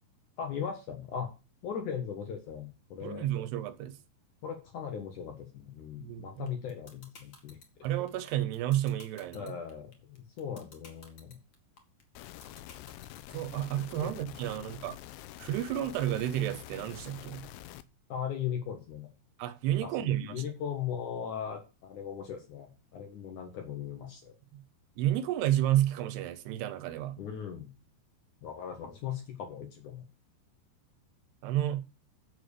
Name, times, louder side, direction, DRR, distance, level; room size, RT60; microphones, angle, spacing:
voice 1, 0.4-1.3 1.6-3.3 4.4-7.6 9.3-11.4 13.6-13.7 14.0-14.1 14.5-14.6 18.1-19.1 19.8-24.4 27.2-27.7 28.4-30.0, left 8 dB, 60° left, 2.4 m, -38 dB
voice 2, 3.0-4.0 6.0-6.5 7.8-9.5 13.3-15.0 15.4-17.5 19.4-20.4 24.5-24.6 25.0-27.2 31.4-31.8, right 12 dB, 85° right, 2.7 m, -31 dB
sound 1, 6.5-13.5, left 4 dB, 40° left, 1.9 m, -52 dB
sound 2, 12.2-17.8, left 14 dB, 85° left, 2.7 m, -47 dB
7.9 x 6.9 x 6.7 m
omnidirectional pair, 4.7 m